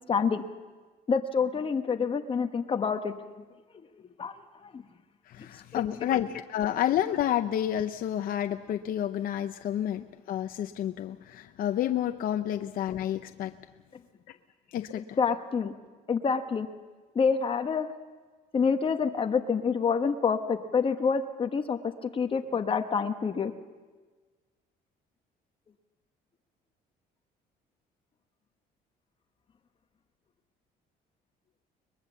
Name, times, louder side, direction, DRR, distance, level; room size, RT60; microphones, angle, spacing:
voice 1, 0.1-0.4 1.1-3.1 4.2-4.3 4.6-4.8 5.4-5.5 5.7-5.8 12.5-12.6 14.9-15.7 16.1-16.7 17.1-17.9 18.5-23.5, left 5 dB, 30° left, 6 dB, 1.1 m, -27 dB
voice 2, 5.3-13.5 14.7-15.2, left 11 dB, 60° left, 8 dB, 0.7 m, -30 dB
22.5 x 20.5 x 7.2 m, 1.4 s
cardioid pair, 110°, 17 cm